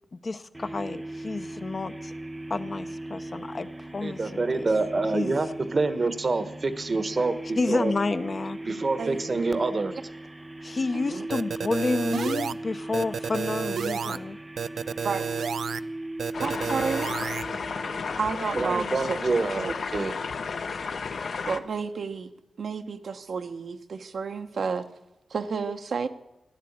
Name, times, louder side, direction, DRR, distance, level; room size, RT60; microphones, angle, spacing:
voice 1, 0.1-2.1 2.5-4.7 5.1-5.4 7.6-8.6 10.6-14.4, left 3 dB, 35° left, 10 dB, 0.7 m, -30 dB
sound 1, 0.5-18.8, right 1 dB, 15° right, 0.5 m, -38 dB
voice 2, 4.0-7.9 8.6-10.0 18.6-20.1, right 3 dB, 35° right, 12 dB, 1.1 m, -27 dB
voice 3, 10.9-11.3 15.0-15.3 16.4-17.1 18.2-19.2 19.6-19.7 21.5-22.3 22.6-24.9 25.3-26.1, right 5 dB, 65° right, 8 dB, 1.0 m, -31 dB
sound 2, 11.3-12.5 12.9-14.2 14.6-15.8 16.2-17.4, right 6 dB, 80° right, 0.5 m, -31 dB
sound 3, 16.3-21.6, left 5 dB, 60° left, 0.9 m, -33 dB
15.0 x 11.0 x 8.6 m, 0.94 s
wide cardioid pair, 145°, 0 cm